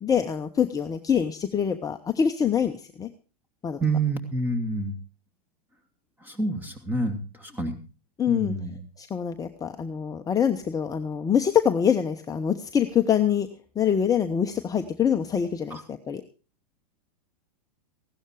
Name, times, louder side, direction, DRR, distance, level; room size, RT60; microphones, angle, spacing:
voice 1, 0.0-3.1 3.6-3.8 8.2-8.5 9.0-13.5 13.8-16.2, left 8 dB, 15° left, 6 dB, 1.0 m, -25 dB
voice 2, 3.8-4.9 6.2-7.8 8.3-8.8 15.7-15.8, right 2 dB, 10° right, 8 dB, 2.6 m, -28 dB
16.0 x 12.0 x 4.8 m, 0.35 s
hypercardioid pair, 100°, 21 cm